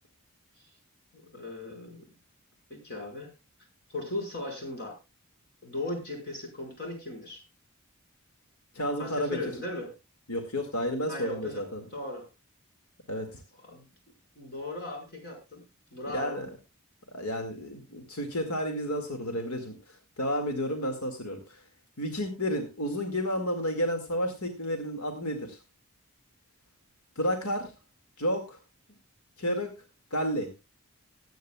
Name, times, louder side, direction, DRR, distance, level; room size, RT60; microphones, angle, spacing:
voice 1, 1.3-2.0 2.7-3.3 3.9-5.0 5.6-7.4 9.0-9.9 11.1-11.6 11.9-12.3 13.7-13.8 14.3-15.6 15.9-16.4, left 2 dB, 45° left, 1 dB, 5.2 m, -37 dB
voice 2, 8.7-9.4 10.3-11.8 13.1-13.4 16.1-16.5 17.1-21.6 22.0-25.6 27.2-27.7 28.2-28.6 29.4-29.8 30.1-30.5, equal, 90° left, 5 dB, 2.2 m, -31 dB
20.5 x 9.3 x 2.3 m, 0.25 s
head